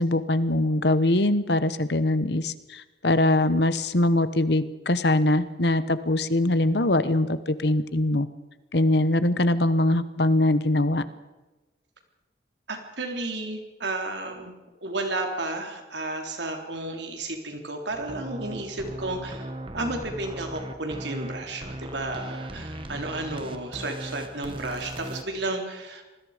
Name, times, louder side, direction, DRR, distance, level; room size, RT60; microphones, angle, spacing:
voice 1, 0.0-8.3 8.7-11.0, left 1 dB, 60° left, 14 dB, 1.1 m, -22 dB
voice 2, 12.7-14.5 14.8-26.0, right 2 dB, 70° right, 4 dB, 3.7 m, -32 dB
sound 1, 17.9-25.2, right 1 dB, 30° right, 1.5 m, -38 dB
27.0 x 20.5 x 5.1 m, 1.2 s
head